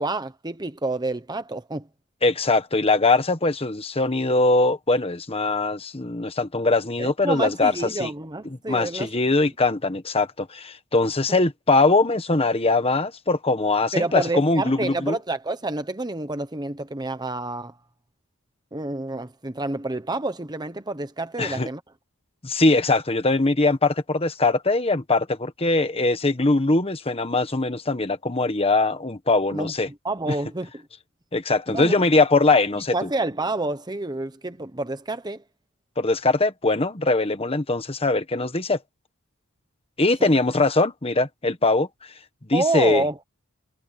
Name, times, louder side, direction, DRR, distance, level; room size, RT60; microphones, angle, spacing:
voice 1, 0.0-1.9 7.0-9.1 13.9-17.7 18.7-21.8 29.5-30.8 31.7-32.0 32.9-35.4 40.2-40.3 42.5-43.2, right 2 dB, 20° right, 1.1 m, -28 dB
voice 2, 2.2-7.7 8.0-8.1 8.7-15.2 21.4-21.7 22.4-29.9 31.3-33.1 36.0-38.8 40.0-41.9 42.5-43.0, left 2 dB, 25° left, 1.3 m, -21 dB
head